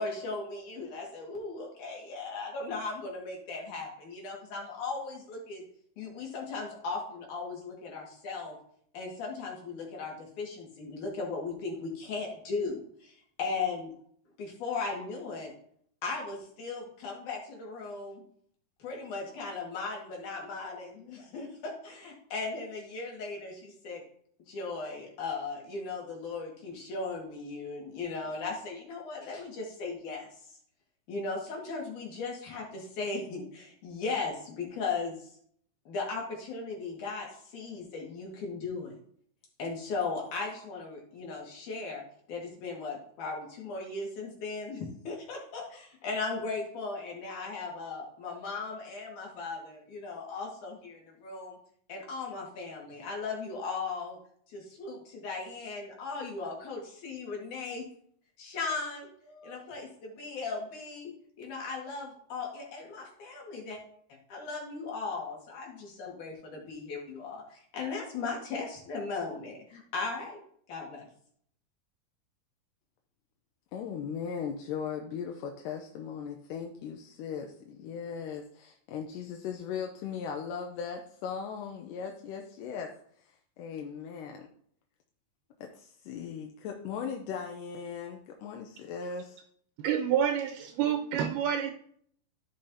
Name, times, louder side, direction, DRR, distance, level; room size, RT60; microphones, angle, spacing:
voice 1, 0.0-5.6 6.0-8.6 8.9-13.9 14.4-15.5 16.0-18.2 18.8-24.0 24.5-30.3 31.1-35.3 35.8-38.9 39.6-42.0 42.3-51.6 51.9-54.2 54.5-57.8 58.4-61.1 61.4-63.8 64.3-70.4 70.7-71.1, left 4 dB, 65° left, -1 dB, 3.4 m, -37 dB
voice 2, 73.7-82.9 83.2-84.5 85.6-89.4, left 6 dB, 90° left, 3 dB, 2.3 m, -38 dB
voice 3, 89.8-91.7, right 9 dB, 80° right, 5 dB, 2.1 m, -28 dB
14.5 x 5.5 x 2.8 m, 0.63 s
omnidirectional pair, 3.8 m